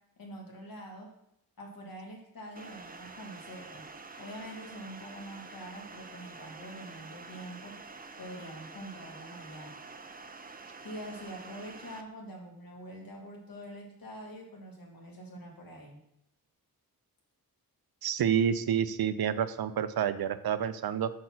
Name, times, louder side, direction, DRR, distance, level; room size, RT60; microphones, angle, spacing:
voice 1, 0.2-1.1 1.6-3.9 4.2-7.7 8.2-9.8 10.8-16.0, equal, 70° left, -1 dB, 1.7 m, -45 dB
sound 1, 2.6-12.0, right 4 dB, 25° right, 0.5 m, -47 dB
voice 2, 18.0-21.1, right 8 dB, 75° right, 13 dB, 0.5 m, -28 dB
5.2 x 4.2 x 5.9 m, 0.78 s
wide cardioid pair, 75°, 36 cm